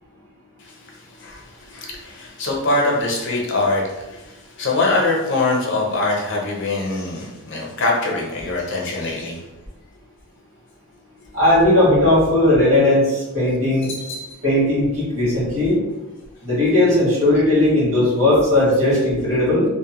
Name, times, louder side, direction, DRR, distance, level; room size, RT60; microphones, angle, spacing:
voice 1, 1.2-9.4 13.9-14.2, left 2 dB, 55° left, -1 dB, 0.6 m, -23 dB
voice 2, 11.3-13.9 14.4-15.8 16.4-19.7, left 1 dB, 60° right, -7 dB, 1.5 m, -17 dB
2.7 x 2.1 x 2.9 m, 1.1 s
head